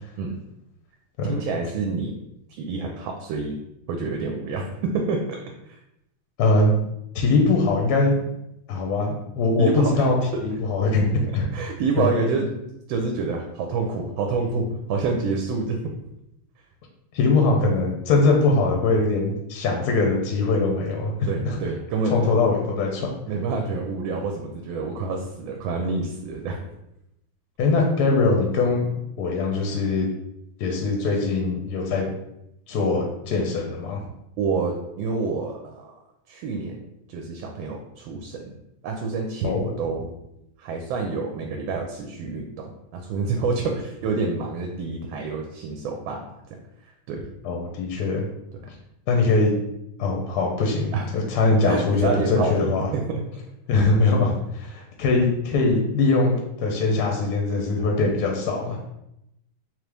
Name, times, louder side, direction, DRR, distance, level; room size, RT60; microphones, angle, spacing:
voice 1, 1.3-2.2 2.6-3.6 3.9-5.4 5.6-5.8 9.6-10.1 11.5-12.4 12.9-15.9 21.3-22.3 23.3-26.6 34.4-35.9 36.3-36.8 37.1-38.5 38.8-40.1 40.6-46.6 47.1-47.3 48.6-48.7 49.3-49.4 50.9-51.1 51.7-53.2, right 4 dB, 75° right, 2 dB, 1.3 m, -28 dB
voice 2, 6.4-6.7 7.1-8.2 8.7-11.5 12.0-12.1 17.1-21.6 22.1-23.1 27.6-28.9 29.2-30.1 30.6-32.1 32.7-34.0 39.4-39.7 47.4-48.3 49.1-49.6 50.0-52.9 53.7-58.9, left 3 dB, 65° left, 1 dB, 1.0 m, -22 dB
3.8 x 3.0 x 3.3 m, 0.83 s
omnidirectional pair, 2.3 m